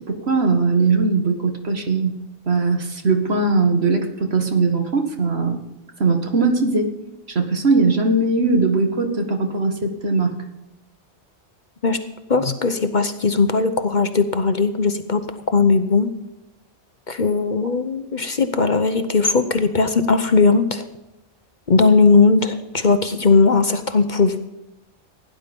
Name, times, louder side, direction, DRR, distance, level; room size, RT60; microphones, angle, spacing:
voice 1, 0.0-2.2 2.5-5.6 6.0-6.9 7.3-10.4, right 3 dB, 65° right, 5 dB, 2.1 m, -20 dB
voice 2, 12.3-16.1 17.1-20.8 21.7-24.4, left 4 dB, 45° left, 9 dB, 1.0 m, -18 dB
17.0 x 10.5 x 5.3 m, 0.96 s
omnidirectional pair, 1.2 m